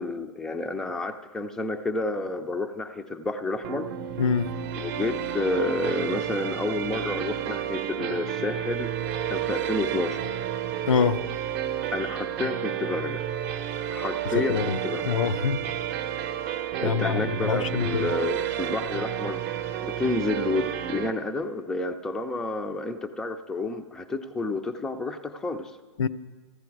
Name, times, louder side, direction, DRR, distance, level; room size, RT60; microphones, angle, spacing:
voice 1, 0.0-3.9 4.7-8.9 9.3-10.2 11.9-13.2 13.9-15.2 16.8-19.4 19.8-25.7, left 2 dB, 5° left, 6 dB, 0.4 m, -30 dB
sound 1, 3.6-21.1, right 10 dB, 40° right, 0.7 m, -31 dB
voice 2, 4.2-4.5 10.9-11.2 14.3-14.8 15.0-15.6 16.8-18.1 26.0-26.1, left 6 dB, 85° left, 10 dB, 0.6 m, -25 dB
15.0 x 10.5 x 4.6 m, 1.4 s
hypercardioid pair, 135°, 16 cm